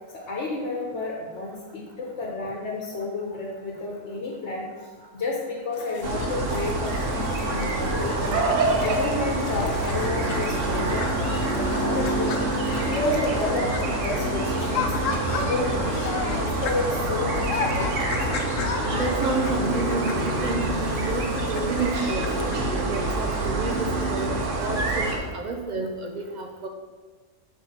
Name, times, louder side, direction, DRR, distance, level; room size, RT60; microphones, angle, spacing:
voice 1, 0.1-8.4 8.8-18.4, left 3 dB, 60° left, -2 dB, 1.2 m, -31 dB
sound 1, 5.7-22.7, left 5 dB, 80° left, 1.0 m, -35 dB
sound 2, 6.0-25.2, right 2 dB, 70° right, 1.3 m, -26 dB
voice 2, 18.9-22.3 22.7-24.3 24.6-26.7, right 3 dB, 50° right, 3 dB, 0.5 m, -30 dB
6.5 x 5.5 x 4.2 m, 1.4 s
omnidirectional pair, 1.3 m